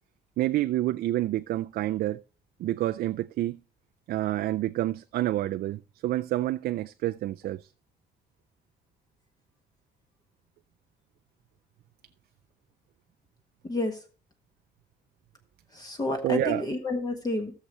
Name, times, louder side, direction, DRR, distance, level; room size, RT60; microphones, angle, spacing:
voice 1, 0.4-2.2 2.6-3.6 4.1-7.7 16.2-16.6, right 14 dB, 60° right, 0.4 m, -28 dB
voice 2, 13.6-14.0 15.7-17.5, left 2 dB, 20° left, 1.4 m, -30 dB
17.0 x 6.8 x 3.0 m
cardioid pair, 150°, 17 cm